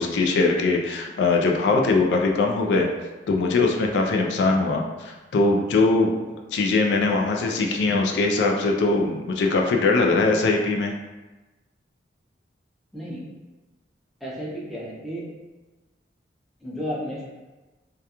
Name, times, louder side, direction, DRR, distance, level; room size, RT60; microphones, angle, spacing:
voice 1, 0.0-2.9 3.3-6.1 6.5-10.9, left 3 dB, 75° left, 2 dB, 0.3 m, -21 dB
voice 2, 12.9-13.3 14.2-15.2 16.6-17.3, equal, ahead, -7 dB, 0.5 m, -33 dB
2.3 x 2.2 x 2.8 m, 1.2 s
head